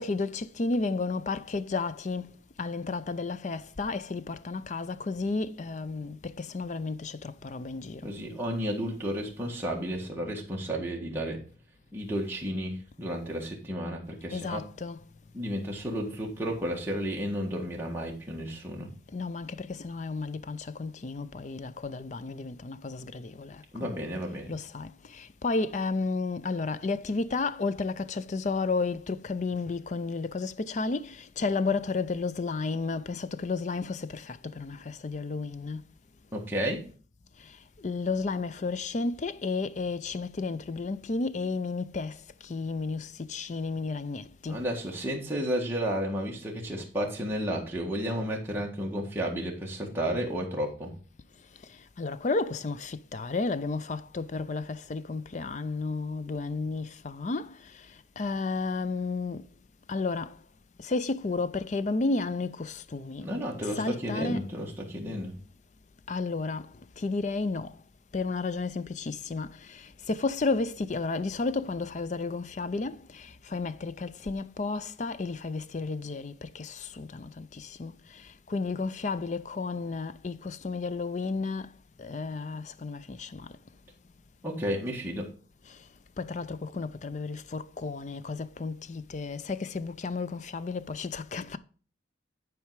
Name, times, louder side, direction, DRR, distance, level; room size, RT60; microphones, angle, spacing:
voice 1, 0.0-2.3 2.6-8.1 14.3-15.0 19.1-23.9 24.5-35.9 37.8-44.6 52.0-57.6 58.2-59.4 59.9-60.4 60.8-63.3 63.6-64.5 66.1-66.7 67.0-67.7 68.1-77.9 78.5-81.7 82.0-83.5 86.2-91.6, left 3 dB, 40° left, 0.4 m, -32 dB
voice 2, 8.0-11.4 11.9-14.6 15.3-18.9 23.7-24.5 36.3-36.8 44.5-50.9 63.2-65.4 84.4-85.3, equal, 10° right, 1.6 m, -32 dB
10.5 x 4.7 x 4.7 m
head